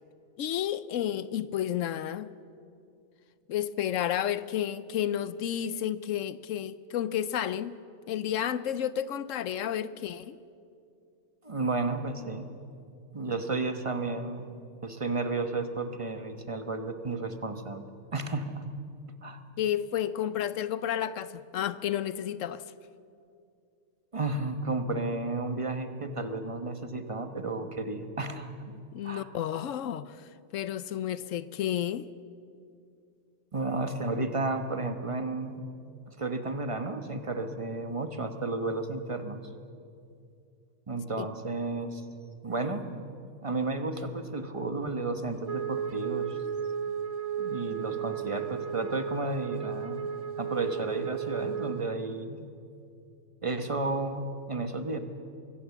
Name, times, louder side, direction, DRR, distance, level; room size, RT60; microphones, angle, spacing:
voice 1, 0.4-2.3 3.5-7.8 8.1-10.4 19.6-22.6 28.9-32.1 41.2-41.3, left 10 dB, 70° left, 1.0 m, -31 dB
voice 2, 11.4-12.5 13.1-14.6 14.8-18.6 19.2-19.4 24.1-28.5 29.0-29.3 33.5-35.6 36.1-39.4 40.9-42.0 42.4-43.0 43.4-46.4 47.4-50.1 50.4-52.5 53.4-55.0, right 2 dB, 25° right, 1.1 m, -32 dB
Wind instrument woodwind instrument, 45.5-51.9, right 8 dB, 40° right, 0.5 m, -34 dB
23.5 x 16.0 x 7.2 m
omnidirectional pair, 1.4 m